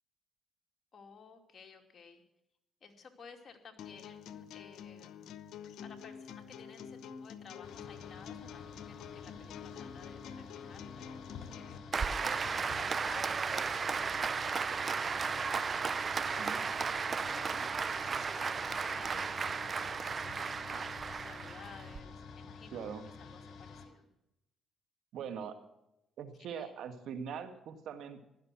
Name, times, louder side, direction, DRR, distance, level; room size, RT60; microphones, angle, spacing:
voice 1, 0.9-2.2 2.8-5.3 5.8-11.1 11.5-17.6 18.0-24.1 26.4-26.7, left 5 dB, 45° left, 3 dB, 2.7 m, -55 dB
sound 1, 3.8-11.8, left 8 dB, 80° left, 0.9 m, -48 dB
sound 2, 7.6-23.9, left 5 dB, 65° left, 3.2 m, -50 dB
Applause, 11.9-22.0, right 5 dB, 40° right, 0.6 m, -34 dB
voice 2, 22.7-23.1 25.1-25.6 26.2-28.2, right 7 dB, 75° right, 9 dB, 1.9 m, -42 dB
16.0 x 12.0 x 6.1 m, 0.85 s
cardioid pair, 90°, 0 cm